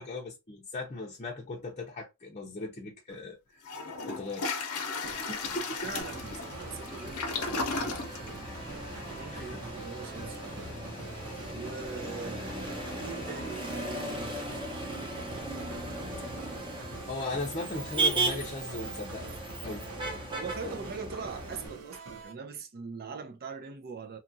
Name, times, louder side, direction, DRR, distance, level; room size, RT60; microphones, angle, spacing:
voice 1, 0.0-3.6 4.0-4.5 4.9-5.9 7.2-8.1 9.3-9.6 17.1-19.3 19.6-19.9 20.6-20.8, left 2 dB, 30° left, 0.6 m, -38 dB
Toilet flush, 3.1-3.2 3.6-14.5, left 4 dB, 85° left, 0.7 m, -39 dB
sound 1, 5.0-22.3, right 5 dB, 85° right, 0.7 m, -46 dB
voice 2, 5.8-8.8 9.1-10.7 11.5-14.5 20.3-24.2, right 5 dB, 45° right, 0.5 m, -42 dB
Motor vehicle (road), 6.0-21.7, right 2 dB, 25° right, 0.8 m, -37 dB
2.8 x 2.4 x 2.6 m
head